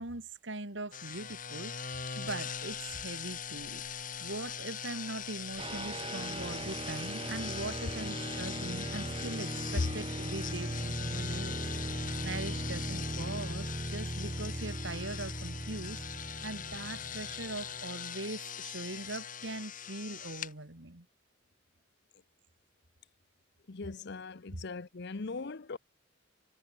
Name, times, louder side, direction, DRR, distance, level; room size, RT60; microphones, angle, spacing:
voice 1, 0.0-21.1, right 2 dB, 65° right, 2.7 m, -41 dB
sound 1, 0.9-20.5, left 7 dB, 45° left, 3.9 m, -41 dB
sound 2, 5.6-17.8, right 1 dB, 30° right, 1.4 m, -38 dB
voice 2, 23.7-25.8, left 3 dB, 60° left, 0.7 m, -40 dB
head